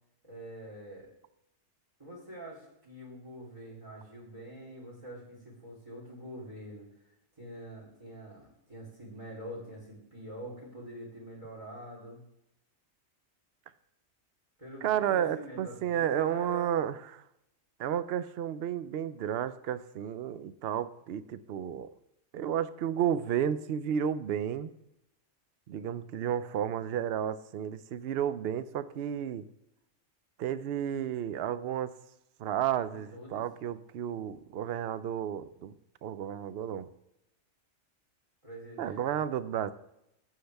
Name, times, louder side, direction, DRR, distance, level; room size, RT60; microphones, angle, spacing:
voice 1, 0.2-1.1 2.0-6.9 7.4-12.2 14.6-16.8 32.9-33.4 38.4-39.0, right 1 dB, 25° right, -2 dB, 3.4 m, -45 dB
voice 2, 14.8-17.2 17.8-21.9 22.3-24.7 25.7-29.5 30.4-31.9 32.4-35.7 36.0-36.9 38.8-39.7, right 9 dB, 60° right, 14 dB, 0.7 m, -32 dB
13.0 x 7.5 x 3.4 m, 0.82 s
omnidirectional pair, 1.3 m